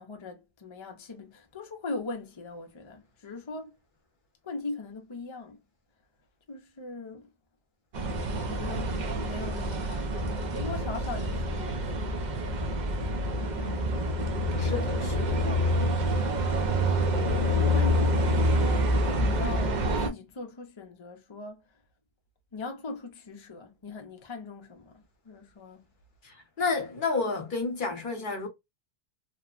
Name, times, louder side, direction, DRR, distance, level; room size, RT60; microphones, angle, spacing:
voice 1, 0.0-3.7 4.4-5.6 6.5-7.3 8.5-11.9 13.3-13.7 17.4-18.9 19.2-21.6 22.5-25.9, left 3 dB, 40° left, 0.5 m, -40 dB
sound 1, 7.9-20.1, equal, 50° right, 0.6 m, -27 dB
voice 2, 13.5-14.1 14.5-15.4 26.2-28.5, left 4 dB, 55° left, 0.9 m, -32 dB
3.0 x 2.1 x 2.3 m
omnidirectional pair, 1.0 m